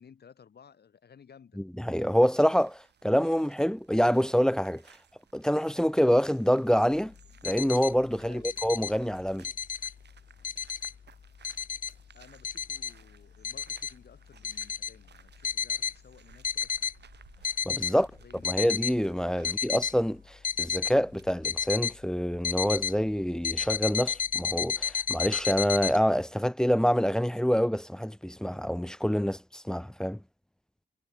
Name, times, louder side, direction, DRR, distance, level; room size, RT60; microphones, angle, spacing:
voice 1, 0.0-1.6 8.2-8.6 12.1-16.9 17.8-18.6 19.3-19.6, left 7 dB, 65° left, 3.5 m, -56 dB
voice 2, 1.6-4.8 5.3-7.1 7.4-9.5 17.6-18.1 18.4-30.2, equal, 5° left, 0.6 m, -26 dB
sound 1, 2.2-21.5, right 7 dB, 70° right, 3.2 m, -60 dB
sound 2, 7.2-7.9 8.4-8.9 9.3-9.9 10.4-10.9 11.4-12.0 12.4-12.9 13.4-13.9 14.4-14.9 15.4-15.9 16.4-16.9 17.3-17.9 18.4-18.9 19.4-19.9 20.4-20.9 21.4-21.9 22.4-22.9 23.4-26.0, left 7 dB, 50° left, 0.6 m, -31 dB
wide cardioid pair, 135°, 18 cm